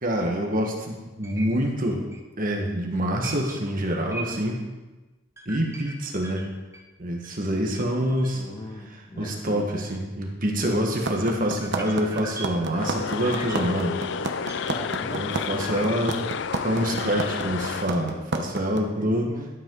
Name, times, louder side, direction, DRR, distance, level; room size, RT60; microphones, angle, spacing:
voice 1, 0.0-2.0 2.4-4.6 5.4-6.5 7.0-8.4 9.2-14.5 15.1-16.2 16.6-19.3, equal, 45° right, 1 dB, 1.5 m, -26 dB
sound 1, 1.2-1.5 1.8-1.9 2.1-2.2 3.2-4.6 5.4-7.4 7.7-7.9 8.2-8.3 8.7-8.8 9.2-9.3 10.2-10.3 11.6-14.7 15.6-16.2 16.5-16.8, right 2 dB, 15° right, 0.9 m, -41 dB
voice 2, 8.3-10.0 14.6-15.3 18.9-19.5, left 1 dB, 25° left, -1 dB, 1.7 m, -40 dB
sound 2, 11.1-18.8, right 3 dB, 60° right, 1.0 m, -29 dB
sound 3, 12.8-17.9, left 6 dB, 60° left, 0.4 m, -31 dB
12.0 x 8.5 x 3.9 m, 1.2 s
head